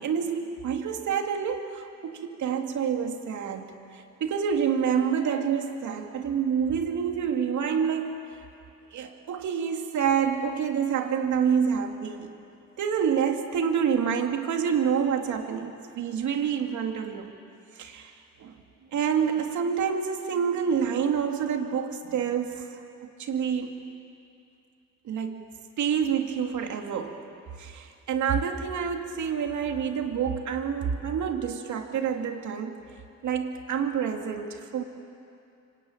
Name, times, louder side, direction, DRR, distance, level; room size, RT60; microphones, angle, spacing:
voice 1, 0.0-3.7 3.9-8.4 8.9-12.4 12.8-17.3 17.8-18.5 18.9-23.7 25.0-25.5 25.8-27.2 27.6-32.8 33.2-34.8, right 7 dB, 75° right, 4 dB, 2.7 m, -28 dB
25.5 x 25.0 x 9.1 m, 2.6 s
cardioid pair, 90°, 30 cm